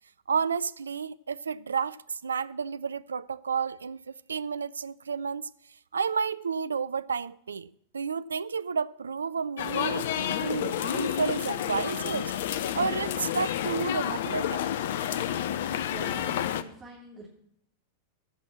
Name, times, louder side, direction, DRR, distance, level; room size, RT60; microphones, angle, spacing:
voice 1, 0.3-5.5 5.9-7.7 7.9-12.3 12.7-14.6, right 5 dB, 70° right, 0.4 m, -31 dB
sound 1, 9.6-16.6, left 10 dB, 55° left, 0.6 m, -30 dB
voice 2, 15.9-17.3, right 3 dB, 20° right, 3.0 m, -45 dB
15.5 x 6.0 x 7.3 m
figure-of-eight pair, 90°, 0 cm